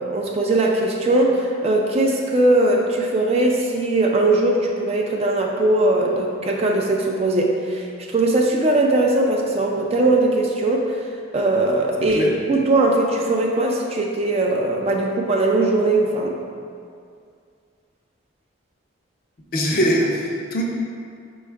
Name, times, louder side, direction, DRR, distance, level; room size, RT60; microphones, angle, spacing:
voice 1, 0.0-10.9 11.3-16.3, right 2 dB, 30° right, 0 dB, 0.3 m, -20 dB
voice 2, 12.0-12.3 19.5-20.6, equal, 45° left, -1 dB, 0.6 m, -22 dB
5.1 x 2.3 x 4.5 m, 2.3 s
head